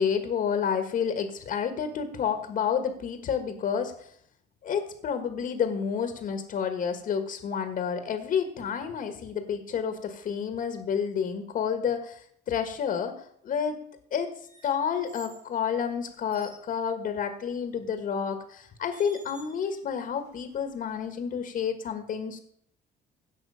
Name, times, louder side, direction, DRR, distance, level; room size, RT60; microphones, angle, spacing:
voice 1, 0.0-4.1 4.6-13.8 14.1-14.3 14.6-22.4, left 7 dB, 55° left, 7 dB, 1.5 m, -30 dB
sound 1, 14.5-15.5 16.1-16.6 18.0-18.2 18.9-19.8 20.2-21.0, right 2 dB, 45° right, 5.2 m, -52 dB
16.5 x 6.2 x 5.6 m, 0.67 s
cardioid pair, 110°, 17 cm